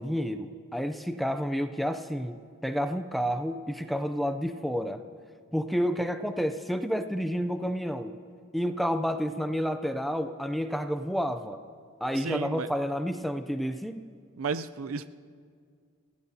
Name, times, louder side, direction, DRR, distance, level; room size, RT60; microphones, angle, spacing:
voice 1, 0.0-5.0 5.5-8.2 8.5-11.6 12.0-14.1, equal, ahead, 7 dB, 0.5 m, -30 dB
voice 2, 12.2-12.7 14.4-15.1, right 5 dB, 75° right, 11 dB, 0.5 m, -33 dB
30.0 x 15.5 x 2.8 m, 2.1 s
head